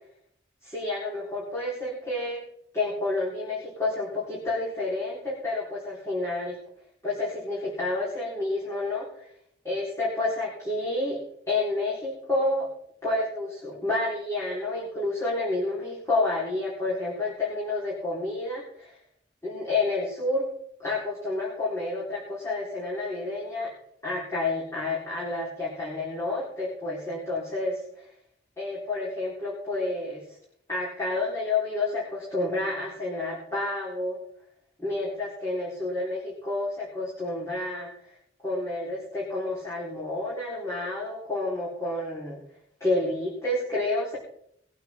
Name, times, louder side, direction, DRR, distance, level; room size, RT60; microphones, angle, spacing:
voice 1, 0.6-2.4 2.7-6.6 7.0-9.3 9.6-11.2 11.5-12.7 13.0-19.0 19.4-20.5 20.8-23.7 24.0-28.1 28.6-30.4 30.7-34.2 34.8-38.2 38.4-42.4 42.8-44.2, left 2 dB, 15° left, -8 dB, 4.4 m, -29 dB
21.5 x 9.1 x 3.8 m, 0.72 s
head